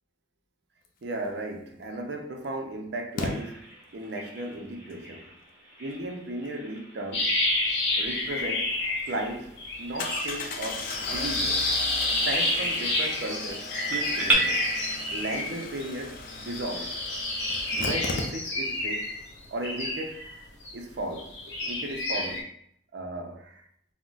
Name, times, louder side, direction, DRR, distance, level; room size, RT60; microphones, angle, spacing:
voice 1, 1.0-5.3 5.8-7.3 7.9-8.7 9.1-11.6 12.2-14.7 15.1-17.0 17.7-19.1 19.5-20.4 20.7-22.5 22.9-23.6, right 1 dB, 75° right, 0.5 m, -35 dB
Engine starting, 1.7-1.8 3.2-3.3 8.4-8.5 8.8-8.9 10.0-18.8 19.1-19.2 19.4-19.5, left 3 dB, 50° left, 0.4 m, -37 dB
Bird vocalization bird call bird song, 3.2-14.3, right 2 dB, 10° right, 0.6 m, -38 dB
sound 1, 7.1-9.3 9.6-15.9 16.3-20.7 21.2-22.4, left 1 dB, 85° left, 0.8 m, -29 dB
2.4 x 2.0 x 3.8 m
head